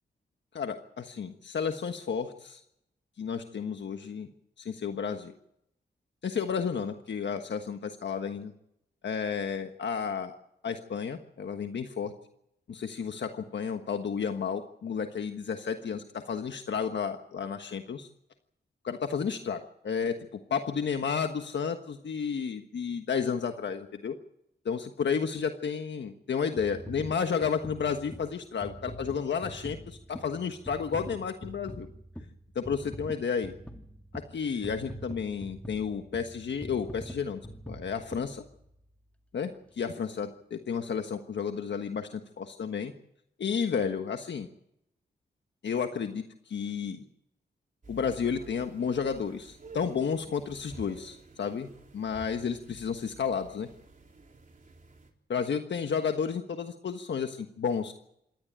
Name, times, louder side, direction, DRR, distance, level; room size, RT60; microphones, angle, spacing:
voice 1, 0.5-2.6 3.2-4.3 4.6-5.3 6.2-8.5 9.0-10.3 10.6-12.1 12.7-18.1 18.8-20.2 20.5-24.2 24.6-31.9 32.5-33.5 34.1-37.4 37.7-38.4 39.3-42.9 43.4-44.5 45.6-47.0 47.9-51.7 51.9-53.7 55.3-57.9, left 6 dB, 75° left, 6 dB, 1.4 m, -32 dB
sound 1, 26.6-39.0 39.5-39.7, equal, 5° left, 2.4 m, -44 dB
sound 2, 47.8-55.1, right 3 dB, 45° right, 3.9 m, -51 dB
27.0 x 12.0 x 8.8 m, 0.78 s
cardioid pair, 70°, 19 cm